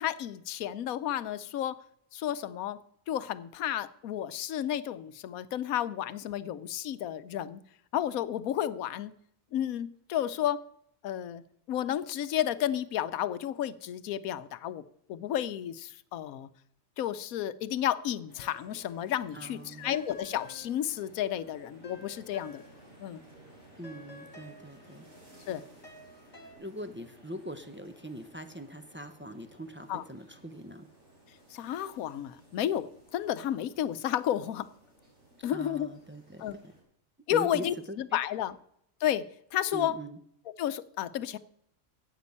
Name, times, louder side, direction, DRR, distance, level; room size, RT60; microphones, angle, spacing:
voice 1, 0.0-1.8 2.1-2.8 3.1-7.6 7.9-9.1 9.5-10.6 11.0-11.4 11.7-16.5 17.0-22.6 23.0-23.2 25.5-25.6 29.9-30.0 31.5-34.7 35.4-35.9 36.4-36.6 37.3-38.5 39.0-39.2 39.5-39.9 40.6-41.4, left 11 dB, 85° left, 15 dB, 1.1 m, -32 dB
sound 1, 18.3-36.8, right 1 dB, 55° right, 5.6 m, -58 dB
sound 2, 18.4-19.1 19.3-23.1 23.3-26.5, left 1 dB, 25° left, 2.4 m, -53 dB
voice 2, 19.3-19.9 23.8-25.1 26.6-30.9 35.5-36.7 37.3-38.2 39.7-40.2, right 1 dB, 15° right, 7 dB, 0.5 m, -42 dB
9.5 x 8.3 x 8.4 m, 0.72 s
omnidirectional pair, 1.4 m